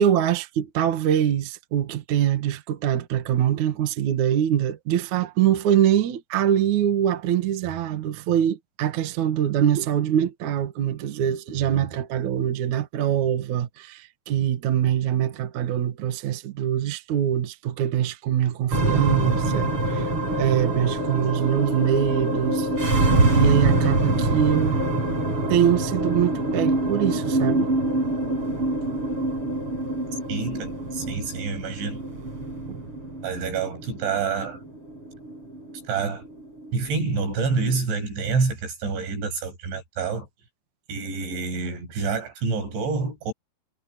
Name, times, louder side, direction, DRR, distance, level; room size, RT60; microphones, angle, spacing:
voice 1, 0.0-22.7 23.3-24.8 25.5-27.7 31.0-31.2 32.7-32.8, right 10 dB, 55° right, 2.5 m, -23 dB
sound 1, 18.7-37.2, right 2 dB, 30° right, 5.9 m, -25 dB
voice 2, 30.3-32.0 33.2-34.6 35.9-36.2 36.7-40.3 40.9-43.3, right 4 dB, 85° right, 9.2 m, -27 dB
omnidirectional pair, 5.2 m